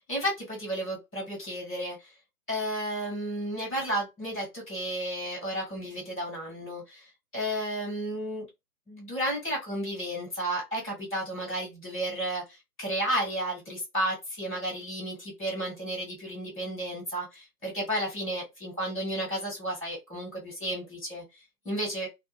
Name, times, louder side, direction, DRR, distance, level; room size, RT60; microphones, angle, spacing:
voice 1, 0.1-2.1 2.5-8.5 8.9-22.1, right 1 dB, 5° left, 0.8 m, -33 dB
2.4 x 2.1 x 3.3 m
figure-of-eight pair, 140°, 50 cm